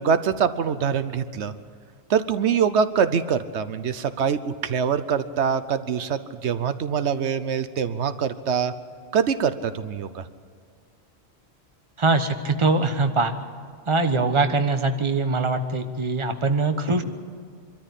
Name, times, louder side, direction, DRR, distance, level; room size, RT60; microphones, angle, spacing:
voice 1, 0.0-1.5 2.1-8.7 9.1-10.2, right 7 dB, 85° right, 12 dB, 1.1 m, -24 dB
voice 2, 12.0-13.3 13.9-17.0, right 3 dB, 30° right, 7 dB, 1.1 m, -22 dB
24.5 x 13.5 x 8.3 m, 2.2 s
omnidirectional pair, 1.1 m